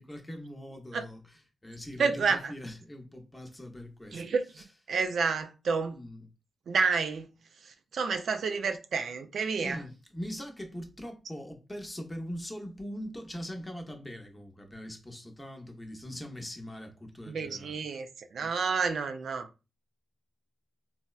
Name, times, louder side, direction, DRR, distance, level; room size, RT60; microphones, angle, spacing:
voice 1, 0.0-4.2 5.9-6.3 9.6-17.8 18.4-18.5, equal, 15° left, 0.7 m, -42 dB
voice 2, 2.0-2.5 4.1-6.0 6.7-7.3 7.6-9.8 17.3-19.5, right 5 dB, 75° right, 0.4 m, -30 dB
4.0 x 2.1 x 2.3 m
cardioid pair, 90°, 0 cm